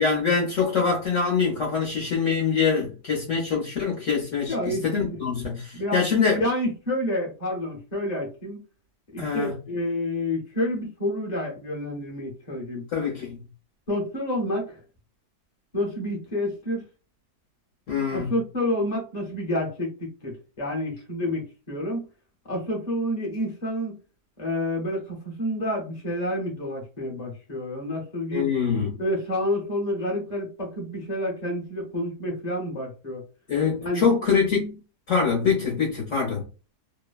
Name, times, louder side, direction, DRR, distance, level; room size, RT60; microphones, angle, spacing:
voice 1, 0.0-6.4 9.2-9.5 12.9-13.4 17.9-18.3 28.3-29.0 33.5-34.8 35.1-36.4, left 5 dB, 55° left, 1.0 m, -24 dB
voice 2, 4.5-4.8 5.7-6.0 6.4-8.6 9.1-12.9 13.9-14.8 15.7-16.8 18.1-22.1 22.4-23.9 24.4-28.4 29.0-33.2 33.8-34.0, left 1 dB, 30° left, 0.8 m, -29 dB
3.0 x 2.1 x 2.3 m
omnidirectional pair, 1.7 m